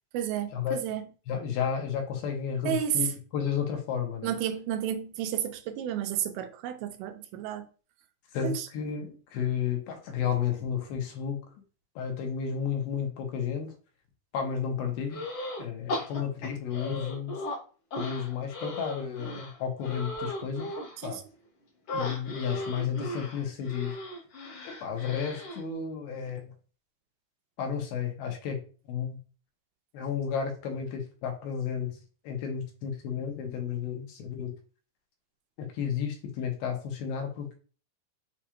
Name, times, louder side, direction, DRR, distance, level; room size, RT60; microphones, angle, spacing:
voice 1, 0.1-1.1 2.6-3.1 4.2-7.7 8.4-8.7 21.0-21.2, right 10 dB, 90° right, 2.5 m, -31 dB
voice 2, 1.3-4.3 8.3-11.4 12.0-13.7 14.3-15.2 15.6-17.4 18.0-20.7 21.0-21.2 21.9-23.9 24.6-26.5 27.6-29.2 29.9-32.0 32.2-34.5 35.6-37.6, left 7 dB, 85° left, 2.8 m, -32 dB
sound 1, 15.1-15.6 15.9-17.6 17.9-21.0 21.9-25.6, left 1 dB, 60° left, 1.4 m, -37 dB
6.9 x 2.4 x 2.9 m
omnidirectional pair, 4.2 m